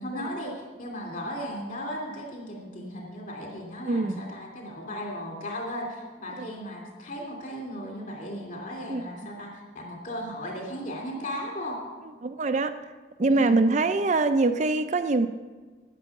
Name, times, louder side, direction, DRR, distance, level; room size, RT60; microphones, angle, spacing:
voice 1, 0.0-11.8 13.3-13.6, equal, 45° left, 1 dB, 2.9 m, -36 dB
voice 2, 3.9-4.2 6.4-6.5 8.9-9.0 12.2-12.7 13.2-15.3, right 3 dB, 35° right, 8 dB, 0.5 m, -24 dB
11.0 x 9.9 x 7.2 m, 1.4 s
head